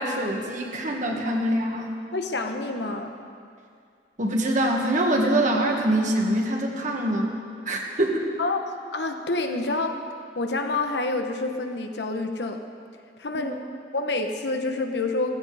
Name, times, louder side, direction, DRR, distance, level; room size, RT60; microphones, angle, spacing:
voice 1, 0.0-1.9 4.2-7.4 7.7-8.3 13.3-13.6, right 1 dB, 45° right, 1 dB, 1.9 m, -24 dB
voice 2, 2.1-3.1 8.4-8.6 8.9-10.0 10.3-12.6 13.2-13.6 13.9-15.3, left 2 dB, 70° left, 5 dB, 1.2 m, -27 dB
16.0 x 15.0 x 5.0 m, 2.3 s
head